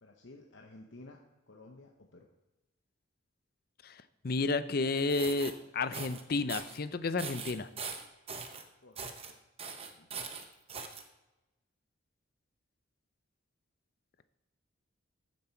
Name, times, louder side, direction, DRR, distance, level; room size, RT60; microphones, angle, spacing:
voice 1, 0.0-1.2 1.5-2.3 8.8-9.4 9.8-10.3, left 2 dB, 65° left, 2 dB, 0.9 m, -54 dB
voice 2, 4.2-7.7, left 3 dB, 45° left, 13 dB, 0.5 m, -31 dB
sound 1, 5.0-5.5 5.9-6.2 6.5-6.8 7.2-8.6 9.0-9.3 9.6-11.0, right 5 dB, 30° right, 0.8 m, -41 dB
14.0 x 7.4 x 4.4 m, 1.0 s
head